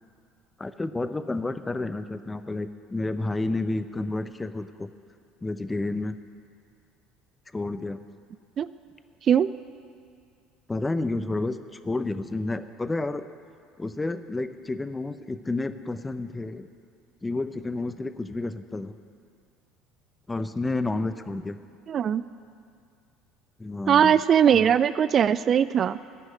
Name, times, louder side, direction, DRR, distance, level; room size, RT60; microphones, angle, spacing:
voice 1, 0.6-4.9 5.4-6.2 7.5-8.0 10.7-11.6 11.8-13.3 13.8-16.7 17.2-19.0 20.3-21.6 23.6-24.2 24.5-24.7, left 2 dB, 15° left, 11 dB, 0.7 m, -30 dB
voice 2, 21.9-22.2 23.9-26.0, right 8 dB, 45° right, 15 dB, 0.3 m, -20 dB
14.5 x 6.3 x 9.2 m, 2.3 s
figure-of-eight pair, 65°, 0 cm